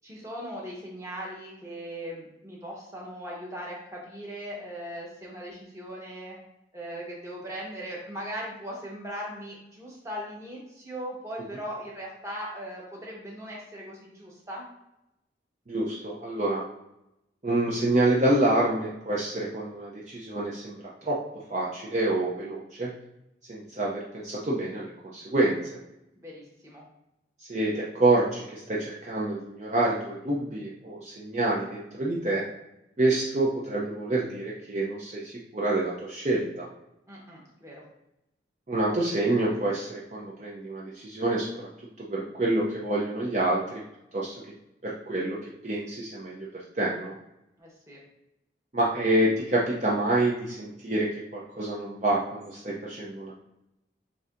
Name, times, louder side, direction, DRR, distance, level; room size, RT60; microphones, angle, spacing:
voice 1, 0.0-6.4 6.7-14.7 26.2-26.8 37.1-37.8 47.6-48.0, equal, 15° right, -4 dB, 1.1 m, -39 dB
voice 2, 15.7-16.6 17.4-21.2 21.5-22.9 23.5-25.6 27.5-32.4 33.0-36.7 38.7-41.7 42.0-43.8 44.1-44.4 44.8-47.1 48.7-53.3, right 2 dB, 40° right, -5 dB, 0.6 m, -27 dB
7.5 x 2.7 x 2.5 m, 0.88 s
head